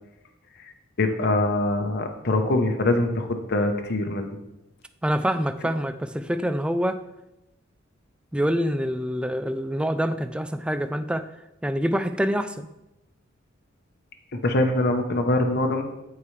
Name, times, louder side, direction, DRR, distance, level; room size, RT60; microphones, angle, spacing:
voice 1, 1.0-4.4 14.4-15.8, left 2 dB, 55° left, 5 dB, 0.9 m, -23 dB
voice 2, 5.0-7.0 8.3-11.3 11.6-12.7, equal, 5° right, 10 dB, 0.3 m, -26 dB
14.0 x 4.8 x 3.2 m, 0.94 s
head